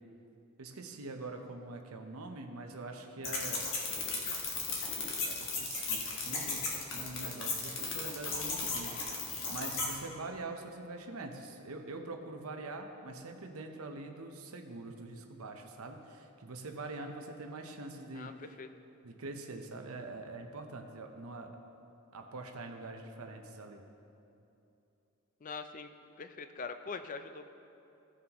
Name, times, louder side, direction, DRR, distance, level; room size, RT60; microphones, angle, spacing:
voice 1, 0.6-3.7 5.2-9.0 9.5-18.3 19.0-21.6 22.1-23.8, right 2 dB, 85° right, 4 dB, 0.8 m, -44 dB
sound 1, 3.2-9.9, left 4 dB, 60° left, 1.6 m, -36 dB
voice 2, 18.1-18.7 25.4-25.9 26.2-27.4, left 4 dB, 35° left, 9 dB, 0.4 m, -43 dB
16.0 x 7.5 x 3.0 m, 2.8 s
head